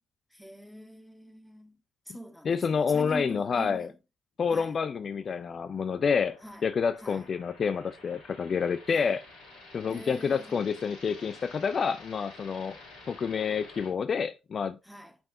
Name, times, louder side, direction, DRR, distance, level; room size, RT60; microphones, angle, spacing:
voice 1, 0.3-1.8 2.1-4.0 4.5-4.8 6.4-6.7 7.0-7.2 8.9-9.1 9.9-10.7 14.8-15.2, equal, 5° left, 1.7 m, -44 dB
voice 2, 2.4-3.9 4.4-9.2 9.7-12.8 13.1-14.8, left 6 dB, 45° left, 0.4 m, -28 dB
sound 1, 4.8-13.9, left 2 dB, 70° left, 4.5 m, -51 dB
7.0 x 5.4 x 4.2 m
figure-of-eight pair, 45°, 0 cm